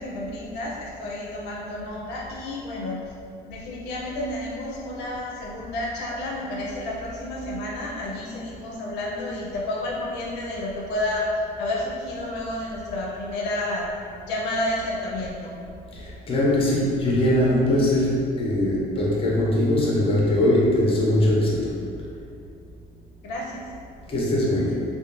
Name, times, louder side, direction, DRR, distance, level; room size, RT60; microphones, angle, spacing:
voice 1, 0.0-3.1 3.5-13.9 14.3-15.5 23.2-23.7, left 1 dB, 85° left, -3 dB, 0.5 m, -30 dB
voice 2, 15.9-21.7 24.1-24.7, left 1 dB, 35° left, -5 dB, 0.7 m, -21 dB
2.4 x 2.2 x 2.9 m, 2.4 s
cardioid pair, 110°, 17 cm